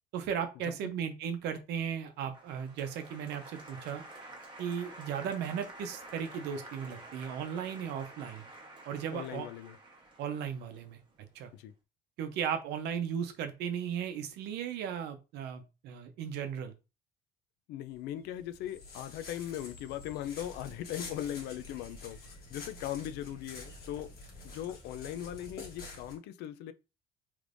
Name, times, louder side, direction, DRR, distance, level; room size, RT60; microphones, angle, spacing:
voice 1, 0.1-4.0 4.6-8.4 8.9-9.5 10.2-11.0 11.3-11.5 12.2-16.7, right 8 dB, 85° right, 0.7 m, -36 dB
Applause, 2.3-11.4, right 2 dB, 25° right, 1.1 m, -50 dB
voice 2, 9.1-9.8 11.5-11.7 17.7-24.1 24.4-26.7, left 12 dB, 80° left, 0.4 m, -39 dB
sound 1, 17.9-26.1, left 3 dB, 65° left, 1.4 m, -48 dB
3.3 x 3.1 x 2.5 m
cardioid pair, 110°, 17 cm